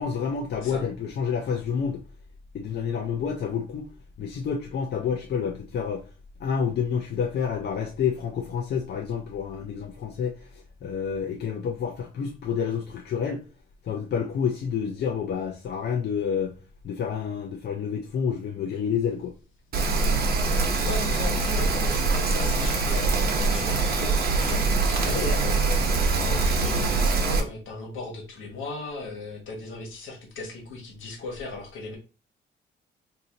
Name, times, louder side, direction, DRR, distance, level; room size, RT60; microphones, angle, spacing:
voice 1, 0.0-2.0 2.5-3.9 4.2-6.1 6.4-13.4 13.8-16.5 16.8-19.3 25.1-25.3, left 7 dB, 55° left, 0.6 m, -29 dB
Rain, 19.7-27.4, right 3 dB, 50° right, 0.9 m, -23 dB
voice 2, 20.8-32.0, left 3 dB, 75° left, 1.4 m, -37 dB
2.7 x 2.7 x 3.9 m
cardioid pair, 90°, 20 cm